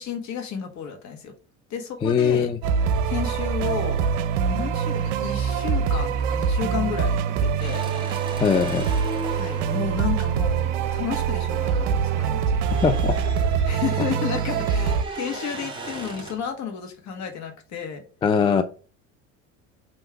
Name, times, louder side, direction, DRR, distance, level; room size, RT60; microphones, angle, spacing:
voice 1, 0.0-1.3 1.7-2.5 3.0-4.1 4.4-7.8 9.3-12.6 13.6-18.0, left 7 dB, 45° left, 4 dB, 1.5 m, -32 dB
voice 2, 2.0-2.6 8.4-8.9 12.8-13.2 18.2-18.6, left 6 dB, 15° left, 9 dB, 0.3 m, -21 dB
sound 1, 2.6-15.0, right 6 dB, 70° right, 0.6 m, -24 dB
sound 2, 7.6-11.8 12.1-16.5, right 2 dB, 10° right, 1.4 m, -37 dB
3.7 x 3.0 x 4.6 m, 0.38 s
hypercardioid pair, 80°, 38 cm